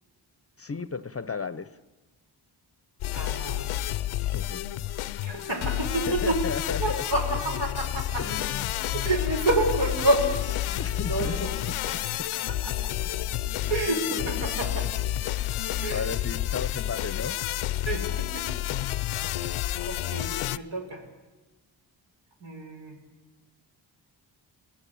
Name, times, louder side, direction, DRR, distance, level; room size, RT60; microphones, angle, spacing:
voice 1, 0.6-1.8 4.3-4.7 6.1-7.0 8.2-8.7 10.8-11.5 12.2-12.3 14.1-14.3 15.9-17.4, left 5 dB, 30° left, 16 dB, 0.8 m, -34 dB
sound 1, 3.0-20.6, left 13 dB, 90° left, 0.7 m, -30 dB
voice 2, 3.1-3.7 4.4-4.5 5.2-6.4 6.8-8.3 8.9-11.9 12.3-12.9 13.7-14.9 15.8-16.1 17.9-18.5 19.3-19.6 19.9-21.0 22.4-23.0, right 2 dB, 65° right, 2 dB, 5.9 m, -29 dB
22.0 x 17.0 x 8.6 m, 1.2 s
supercardioid pair, 45°, 48 cm